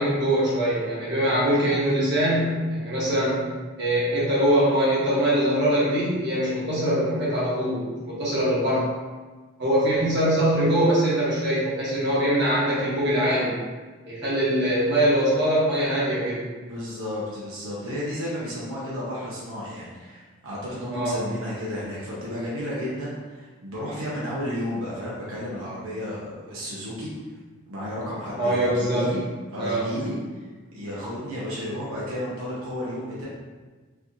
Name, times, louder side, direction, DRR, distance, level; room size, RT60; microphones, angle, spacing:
voice 1, 0.0-3.4 3.8-8.9 9.6-13.6 14.1-16.4 20.9-21.2 28.4-29.1 29.6-29.9, equal, 55° right, -8 dB, 1.2 m, -23 dB
voice 2, 16.6-27.1 27.7-29.3 29.5-30.2 30.7-33.3, left 1 dB, 85° right, -7 dB, 0.9 m, -32 dB
4.2 x 2.9 x 2.6 m, 1.3 s
head